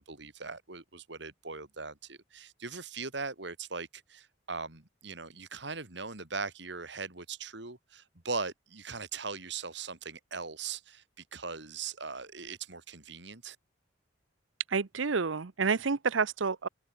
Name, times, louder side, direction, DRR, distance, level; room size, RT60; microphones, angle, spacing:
voice 1, 0.0-13.6, right 4 dB, 65° right, 2.8 m, -40 dB
voice 2, 14.7-16.7, right 5 dB, 90° right, 0.8 m, -29 dB
open air
head